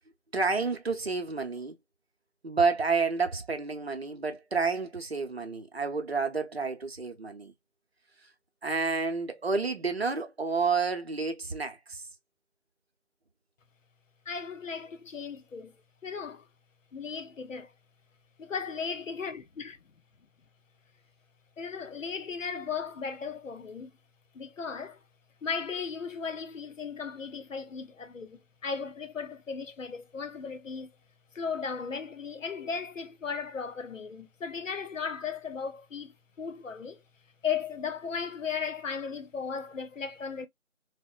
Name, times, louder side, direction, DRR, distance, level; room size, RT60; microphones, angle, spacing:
voice 1, 0.3-1.8 2.4-7.5 8.6-12.0, right 4 dB, 55° right, 0.7 m, -30 dB
voice 2, 14.3-15.8 16.0-16.5 16.9-17.7 18.4-19.8 21.6-23.9 24.3-25.0 25.4-30.9 31.3-37.0 37.4-40.5, left 6 dB, 85° left, 0.8 m, -36 dB
3.6 x 2.1 x 2.3 m
figure-of-eight pair, 175°, 38 cm